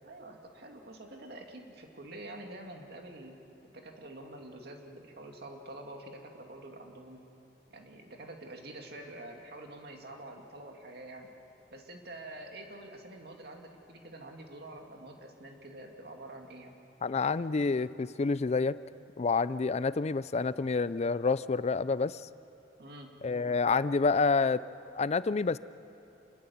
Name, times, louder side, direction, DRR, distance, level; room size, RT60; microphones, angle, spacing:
voice 1, 0.0-3.4 3.7-7.2 7.7-11.3 11.7-16.7 22.8-23.1, right 1 dB, 65° right, 2 dB, 2.5 m, -47 dB
voice 2, 17.0-18.8 19.2-22.2 23.2-24.6 24.9-25.6, left 4 dB, 40° left, 16 dB, 0.4 m, -28 dB
28.0 x 20.0 x 7.2 m, 2.9 s
head